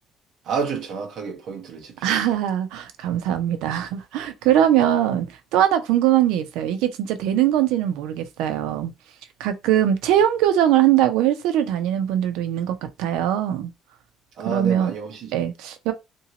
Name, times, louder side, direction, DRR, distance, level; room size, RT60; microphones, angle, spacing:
voice 1, 0.4-2.3 14.4-15.3, right 6 dB, 45° right, 0.9 m, -30 dB
voice 2, 2.0-8.9 9.4-13.7 14.5-14.9 15.3-15.9, right 11 dB, 85° right, 0.5 m, -21 dB
2.9 x 2.7 x 2.8 m
cardioid pair, 170°, 0 cm